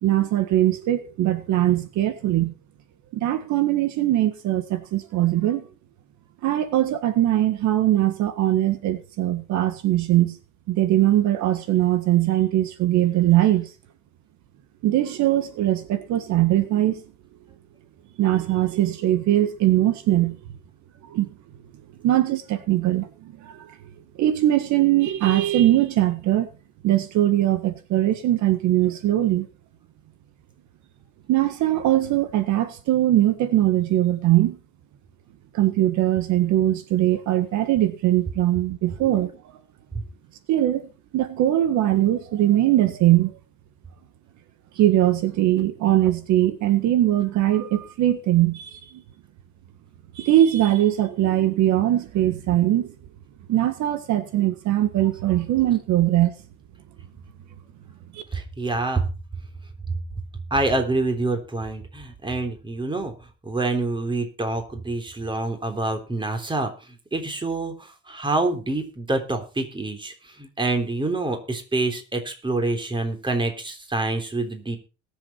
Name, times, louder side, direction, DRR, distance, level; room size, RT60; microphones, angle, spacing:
voice 1, 0.0-2.5 3.1-5.7 6.4-10.4 10.7-13.7 14.8-17.0 18.2-20.4 21.1-21.3 22.0-23.8 24.2-26.5 26.8-29.5 31.3-34.6 35.5-39.3 40.5-43.3 44.7-48.9 50.1-52.9 53.5-56.3 58.1-58.2, right 13 dB, 70° right, 1.7 m, -21 dB
voice 2, 58.3-59.1 60.5-63.1 63.4-66.7 67.1-74.8, right 2 dB, 15° right, 3.4 m, -26 dB
21.0 x 7.3 x 4.4 m
cardioid pair, 110°, 30 cm